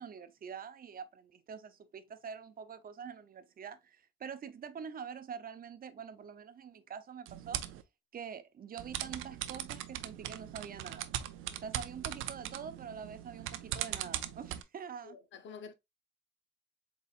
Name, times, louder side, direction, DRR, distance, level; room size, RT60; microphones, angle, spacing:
voice 1, 0.0-7.6 8.1-11.1 11.6-15.2, right 7 dB, 45° right, 0.7 m, -45 dB
sound 1, 7.3-7.8 8.8-14.6, right 12 dB, 85° right, 0.5 m, -40 dB
voice 2, 15.0-15.7, left 5 dB, 70° left, 0.8 m, -48 dB
4.1 x 3.9 x 2.4 m
cardioid pair, 90°, 20 cm